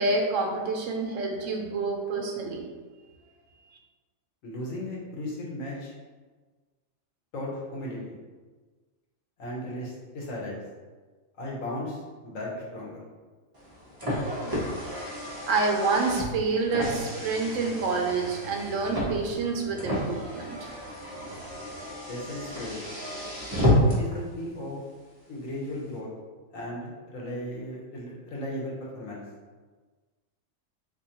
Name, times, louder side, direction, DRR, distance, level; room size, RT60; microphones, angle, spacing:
voice 1, 0.0-2.6 15.5-20.7, right 3 dB, 75° right, 1 dB, 1.0 m, -28 dB
voice 2, 4.4-5.9 7.3-8.2 9.4-10.6 11.4-13.0 22.1-22.8 23.8-24.8 25.3-26.1 26.5-29.2, left 1 dB, 80° left, -4 dB, 1.3 m, -36 dB
Car, 13.5-24.2, equal, 20° right, 0.7 m, -30 dB
3.7 x 2.9 x 2.8 m, 1.4 s
omnidirectional pair, 1.4 m